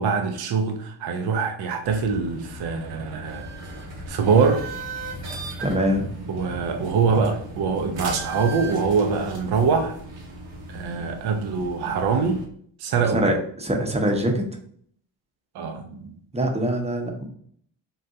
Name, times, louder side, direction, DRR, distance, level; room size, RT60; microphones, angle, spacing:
voice 1, 0.0-3.5 4.1-4.7 6.3-10.0 10.7-12.4 12.8-13.3 15.5-16.1, right 5 dB, 55° right, 0.5 m, -23 dB
sound 1, 1.8-12.4, right 2 dB, 80° right, 1.1 m, -37 dB
voice 2, 5.6-6.1 13.1-14.4 16.3-17.3, equal, 15° right, 0.8 m, -23 dB
3.7 x 2.1 x 2.6 m
supercardioid pair, 55°, 47 cm